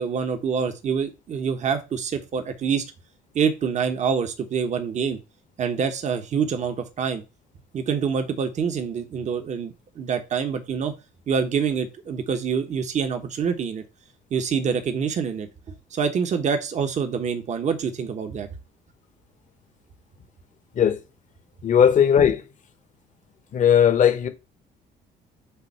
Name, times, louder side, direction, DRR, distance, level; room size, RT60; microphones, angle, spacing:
voice 1, 0.0-2.8 3.3-5.2 5.6-7.2 7.7-10.9 11.3-13.8 14.3-15.5 15.9-18.5, right 6 dB, 45° right, 1.1 m, -26 dB
voice 2, 21.6-22.4 23.5-24.3, left 8 dB, 50° left, 1.1 m, -17 dB
6.8 x 2.7 x 5.3 m
cardioid pair, 110°, 17 cm